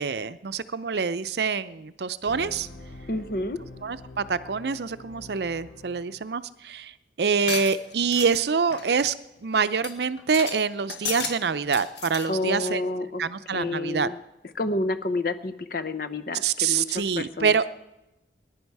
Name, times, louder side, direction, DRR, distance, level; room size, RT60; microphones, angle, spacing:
voice 1, 0.0-2.7 3.8-9.1 9.4-12.8 13.2-14.1 16.4-17.7, right 5 dB, 65° right, 14 dB, 0.5 m, -26 dB
sound 1, 2.2-6.2, left 1 dB, 90° left, 2.6 m, -45 dB
voice 2, 3.1-3.6 12.3-13.2 13.5-14.2 14.6-17.6, left 2 dB, 55° left, 12 dB, 0.8 m, -29 dB
sound 2, 7.4-8.4 8.7-8.9 9.4-9.5 9.8-9.9 10.2-10.6 10.9-11.3 11.6-12.3, left 6 dB, 70° left, 1.5 m, -33 dB
20.0 x 10.5 x 4.7 m, 0.96 s
head